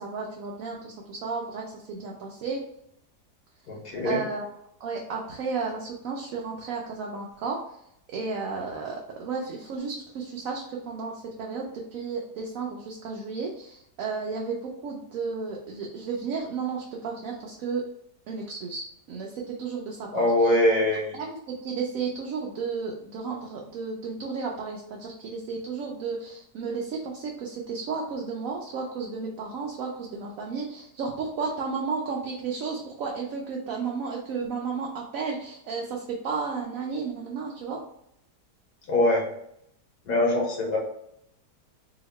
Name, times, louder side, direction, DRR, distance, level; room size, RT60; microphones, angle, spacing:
voice 1, 0.0-2.6 4.0-4.5 4.8-7.6 8.1-11.1 11.4-14.6 14.8-17.8 18.3-20.3 21.1-37.8, right 5 dB, 65° right, -1 dB, 0.9 m, -33 dB
voice 2, 3.7-4.2 20.1-21.1 38.9-39.2 40.0-40.8, left 1 dB, 70° left, -2 dB, 1.4 m, -23 dB
2.9 x 2.8 x 4.1 m, 0.74 s
omnidirectional pair, 1.8 m